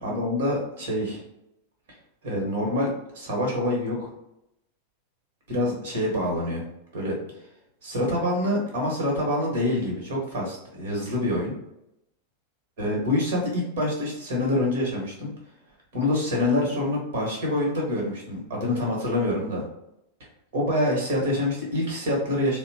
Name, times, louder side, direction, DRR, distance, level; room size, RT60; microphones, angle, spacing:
voice 1, 0.0-1.2 2.2-2.9 3.1-4.1 5.5-6.6 6.9-7.2 7.8-11.5 12.8-15.3 15.9-19.6 20.5-22.6, left 1 dB, 55° right, -2 dB, 1.3 m, -26 dB
3.7 x 2.1 x 2.8 m, 0.83 s
figure-of-eight pair, 90°, 0 cm